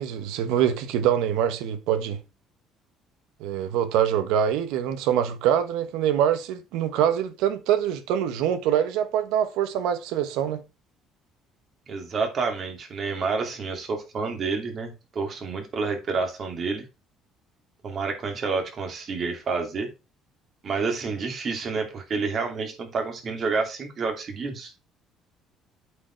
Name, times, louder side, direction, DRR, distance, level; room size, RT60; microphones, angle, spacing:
voice 1, 0.0-2.2 3.4-10.6, right 9 dB, 90° right, 1.2 m, -24 dB
voice 2, 11.9-16.9 17.8-19.9 20.6-24.7, right 4 dB, 40° right, 2.6 m, -29 dB
8.3 x 5.1 x 4.5 m
cardioid pair, 130°, 0 cm